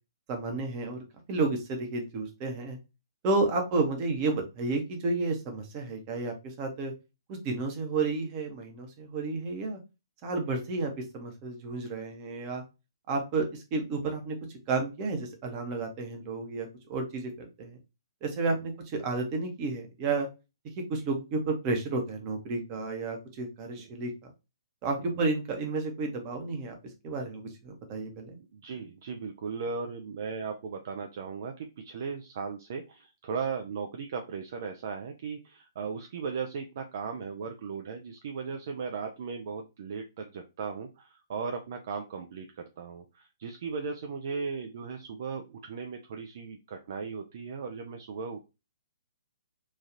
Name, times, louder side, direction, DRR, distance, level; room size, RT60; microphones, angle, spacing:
voice 1, 0.3-2.8 3.2-6.9 7.3-9.8 10.2-12.6 13.1-14.4 14.7-17.8 18.2-20.3 20.8-24.1 24.8-26.8 27.0-28.4, right 3 dB, 30° right, 3 dB, 0.8 m, -31 dB
voice 2, 28.4-48.4, right 5 dB, 45° right, 4 dB, 0.4 m, -37 dB
3.1 x 2.4 x 2.4 m, 0.27 s
figure-of-eight pair, 125°, 2 cm